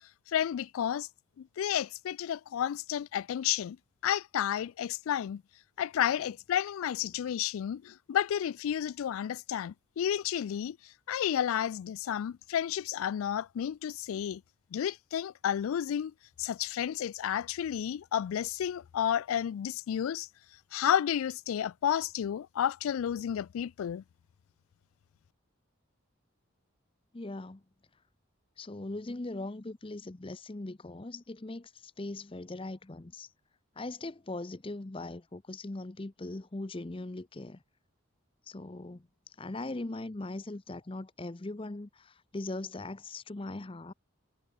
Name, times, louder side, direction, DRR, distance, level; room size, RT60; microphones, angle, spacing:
voice 1, 0.3-1.1 1.4-3.8 4.0-5.4 5.8-14.4 14.7-16.1 16.4-20.3 20.7-24.0, left 9 dB, 75° left, 0.3 m, -31 dB
voice 2, 27.1-27.6 28.6-33.3 33.8-37.6 38.5-43.9, left 2 dB, 25° left, 0.6 m, -40 dB
head